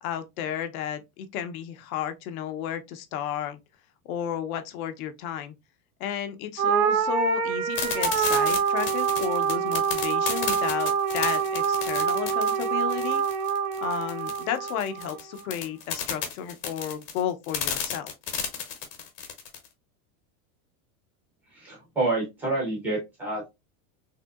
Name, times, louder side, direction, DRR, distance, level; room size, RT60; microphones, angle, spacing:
voice 1, 0.0-3.6 4.0-5.5 6.0-13.2 13.8-18.1, left 9 dB, 70° left, 0.7 m, -33 dB
sound 1, 6.6-15.2, right 7 dB, 85° right, 0.7 m, -26 dB
sound 2, 7.7-19.7, left 8 dB, 40° left, 0.9 m, -32 dB
voice 2, 21.5-23.5, right 2 dB, 5° right, 0.3 m, -28 dB
3.5 x 2.6 x 2.3 m
supercardioid pair, 180°, 44 cm